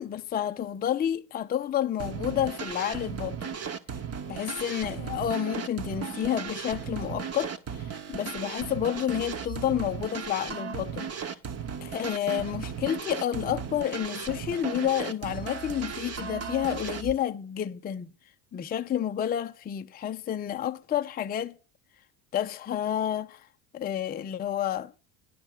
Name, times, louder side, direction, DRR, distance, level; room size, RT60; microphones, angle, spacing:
voice 1, 0.0-3.5 4.3-11.3 11.8-18.1 18.5-21.5 22.3-23.4 23.7-24.9, left 10 dB, 20° left, 0.5 m, -30 dB
sound 1, 2.0-17.1, right 7 dB, 30° right, 1.1 m, -36 dB
11.0 x 5.4 x 8.0 m
hypercardioid pair, 90°, 50 cm